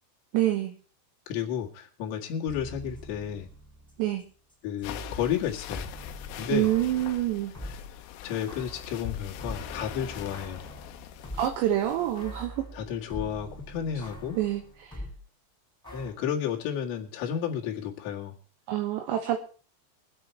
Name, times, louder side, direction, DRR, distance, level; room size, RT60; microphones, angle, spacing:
voice 1, 0.3-0.7 4.0-4.2 6.5-7.5 11.4-12.7 14.4-15.0 18.7-19.4, right 13 dB, 75° right, 5 dB, 2.9 m, -27 dB
voice 2, 1.3-3.5 4.6-5.9 6.3-6.7 8.2-10.7 12.7-14.4 15.9-18.4, left 8 dB, 65° left, -2 dB, 4.0 m, -32 dB
sound 1, 2.5-7.8 8.5-11.7 12.1-15.2 15.8-16.1, equal, ahead, 3.4 m, -43 dB
sound 2, 4.8-12.5, left 12 dB, 80° left, 3.4 m, -42 dB
23.0 x 8.3 x 4.5 m, 0.40 s
omnidirectional pair, 5.8 m